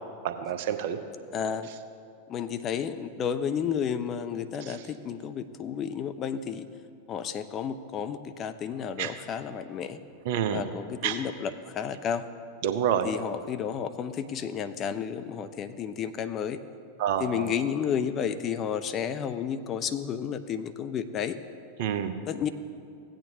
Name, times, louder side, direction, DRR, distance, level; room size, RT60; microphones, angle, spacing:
voice 1, 0.2-1.0 4.7-4.8 9.0-9.1 10.3-10.6 11.0-11.2 12.6-13.1 17.0-17.5 21.8-22.1, right 9 dB, 50° right, 9 dB, 0.7 m, -28 dB
voice 2, 1.3-1.7 2.3-6.7 7.1-10.0 10.5-12.3 13.0-16.6 17.2-21.4 22.3-22.5, left 8 dB, 30° left, 10 dB, 0.5 m, -32 dB
16.0 x 8.8 x 2.8 m, 2.4 s
figure-of-eight pair, 90°, 0 cm